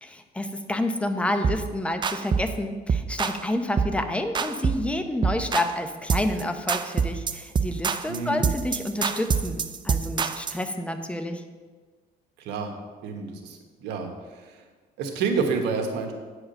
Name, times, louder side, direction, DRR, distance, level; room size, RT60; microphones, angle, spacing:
voice 1, 0.0-11.4, left 1 dB, 5° left, 7 dB, 0.7 m, -29 dB
sound 1, 1.4-1.7 2.0-2.5 2.9-3.4 3.8-4.0 4.3-4.9 5.2-5.8 6.1-6.4 6.7-10.6, right 6 dB, 25° right, 0.4 m, -26 dB
voice 2, 8.1-8.5 12.4-12.7 13.0-14.6 15.0-16.1, right 5 dB, 85° right, 3 dB, 1.3 m, -29 dB
8.9 x 4.9 x 6.5 m, 1.4 s
cardioid pair, 110°, 17 cm